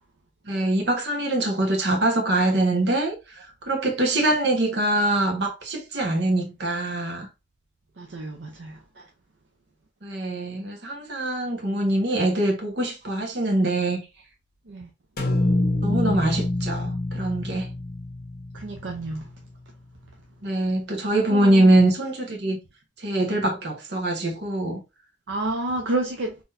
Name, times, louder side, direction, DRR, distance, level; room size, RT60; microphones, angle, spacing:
voice 1, 0.4-7.3 10.0-14.0 15.8-17.7 20.4-22.6 23.0-24.8, right 1 dB, 60° right, 1.1 m, -23 dB
voice 2, 8.0-8.8 14.7-14.9 18.5-19.3 21.3-21.7 25.3-26.4, right 2 dB, 75° right, 0.6 m, -29 dB
sound 1, 15.2-19.4, left 2 dB, 50° left, 0.9 m, -26 dB
3.8 x 3.0 x 2.6 m
head